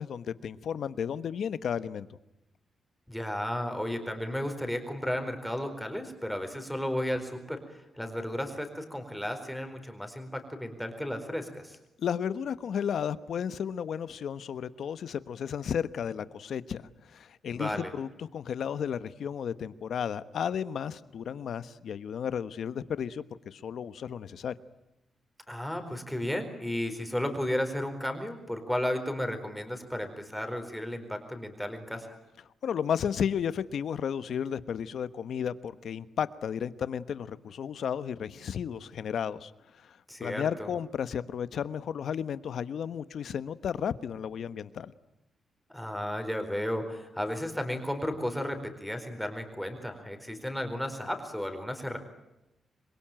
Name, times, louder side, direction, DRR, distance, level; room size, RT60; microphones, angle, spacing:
voice 1, 0.0-2.1 12.0-24.5 32.6-39.5 39.8-44.9, left 8 dB, 65° left, 14 dB, 1.2 m, -33 dB
voice 2, 3.1-11.8 17.5-17.9 25.5-32.2 40.1-40.7 45.7-52.0, left 1 dB, ahead, 6 dB, 4.3 m, -34 dB
27.5 x 22.5 x 9.1 m, 0.92 s
wide cardioid pair, 145°, 0 cm